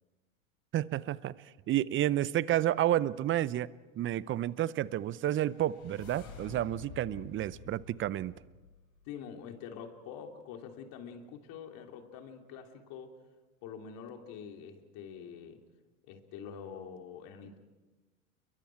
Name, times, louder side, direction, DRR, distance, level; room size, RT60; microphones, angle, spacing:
voice 1, 0.7-1.3 1.7-3.7 4.0-8.3, right 13 dB, 30° right, 20 dB, 0.6 m, -30 dB
sound 1, 4.9-9.1, left 5 dB, 75° left, 7.4 m, -50 dB
voice 2, 9.1-13.2 13.6-15.6 16.1-17.6, left 7 dB, 55° left, 4 dB, 3.1 m, -45 dB
29.5 x 22.5 x 4.7 m, 1.2 s
hypercardioid pair, 90°, 42 cm